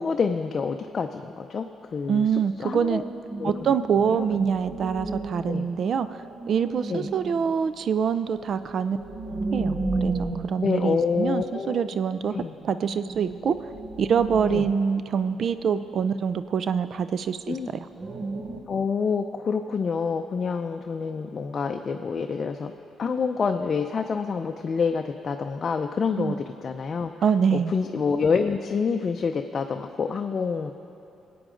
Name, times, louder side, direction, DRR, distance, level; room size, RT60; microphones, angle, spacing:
voice 1, 0.0-3.0 3.4-3.7 4.1-4.2 5.5-5.7 6.9-7.1 10.6-12.0 12.3-12.5 14.5-14.7 17.5-17.7 18.7-22.7 23.0-27.1 27.5-30.7, left 5 dB, 45° left, 5 dB, 0.5 m, -27 dB
voice 2, 2.1-3.0 3.4-9.0 9.5-12.3 12.6-13.7 14.0-17.9 26.2-26.3 27.2-27.7, right 7 dB, 60° right, 12 dB, 0.4 m, -25 dB
sound 1, 2.8-11.8 12.1-12.2 12.5-16.6 17.0-17.1 17.9-18.6, right 3 dB, 40° right, 0.9 m, -34 dB
19.5 x 8.6 x 3.8 m, 3.0 s
cardioid pair, 90°, 0 cm